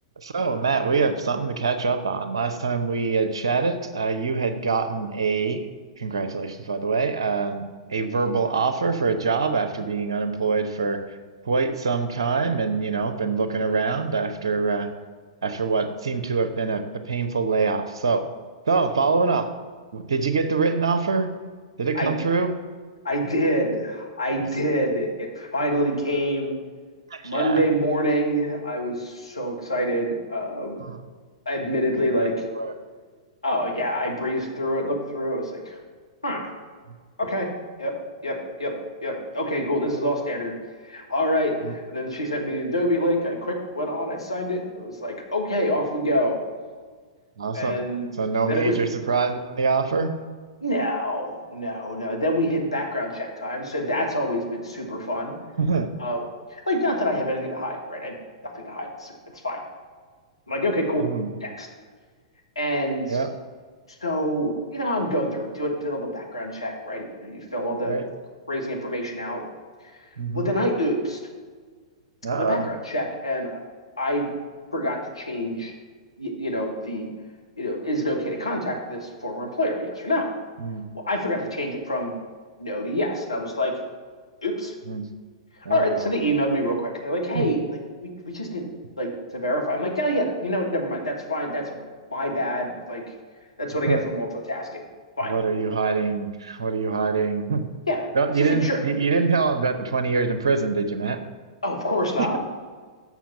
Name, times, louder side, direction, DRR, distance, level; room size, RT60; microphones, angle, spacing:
voice 1, 0.2-5.7 6.0-7.6 7.9-11.2 11.4-14.9 15.4-18.3 18.7-19.5 19.9-21.3 21.8-22.5 27.1-27.6 30.8-31.0 31.9-32.7 41.6-41.7 47.4-47.8 48.2-50.1 55.6-55.9 61.0-61.3 63.1-63.3 67.8-68.0 70.2-70.5 72.2-72.6 80.6-80.9 84.9-85.1 85.6-86.1 87.3-87.5 93.8-94.0 95.2-97.6 98.1-101.2 102.2-102.4, right 4 dB, 65° right, 8 dB, 0.8 m, -24 dB
voice 2, 23.0-26.5 27.2-30.9 31.4-32.3 33.4-35.8 36.2-36.5 37.2-37.5 37.8-37.9 38.2-38.7 39.0-40.6 40.8-46.4 47.5-48.1 48.5-48.8 50.6-55.3 56.0-56.2 56.5-58.2 58.4-59.6 60.5-61.1 61.4-61.7 62.5-63.2 64.0-68.0 68.5-69.4 70.3-71.2 72.3-73.6 74.0-74.3 74.7-75.7 76.2-77.1 77.6-80.3 80.9-82.1 82.6-83.7 84.4-84.7 85.7-87.6 88.0-88.7 89.0-91.8 92.1-93.0 93.6-94.8 95.2-95.3 97.9-98.1 98.4-98.8 101.6-102.4, equal, 80° left, -1 dB, 1.7 m, -26 dB
7.2 x 6.1 x 5.7 m, 1.5 s
figure-of-eight pair, 100°, 3 cm